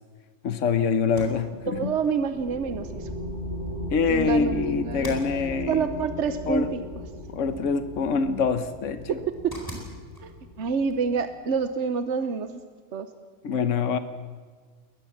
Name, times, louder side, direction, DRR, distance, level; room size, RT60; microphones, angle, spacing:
voice 1, 0.4-2.0 3.9-6.1 6.5-6.7 7.3-9.1 13.4-14.0, left 5 dB, 75° left, 10 dB, 1.3 m, -25 dB
sound 1, 1.0-12.6, equal, 15° left, 4.3 m, -48 dB
sound 2, 1.6-11.6, left 1 dB, 40° left, 4.3 m, -37 dB
voice 2, 1.7-3.1 4.1-5.2 5.7-6.7 9.1-9.2 9.4-9.5 10.2-10.3 10.6-12.6 12.9-13.1, right 6 dB, 65° right, 9 dB, 1.2 m, -27 dB
22.0 x 19.5 x 7.3 m, 1.6 s
omnidirectional pair, 1.3 m